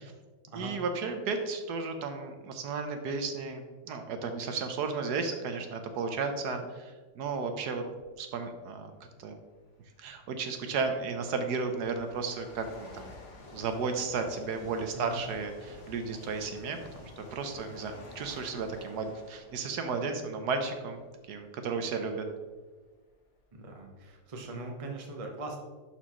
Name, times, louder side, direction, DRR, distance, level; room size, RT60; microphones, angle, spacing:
voice 1, 0.5-7.9 8.2-8.9 9.2-9.4 10.0-13.1 13.5-21.0 21.3-22.3, right 4 dB, 75° right, 6 dB, 1.3 m, -34 dB
sound 1, 7.9-8.1 9.2-9.3 10.1-21.5 22.1-22.3 23.1-23.2 23.4-24.9, left 2 dB, 50° left, 1.4 m, -51 dB
voice 2, 23.5-25.6, right 2 dB, 30° right, 2 dB, 0.7 m, -41 dB
11.5 x 4.4 x 3.0 m, 1.4 s
omnidirectional pair, 1.8 m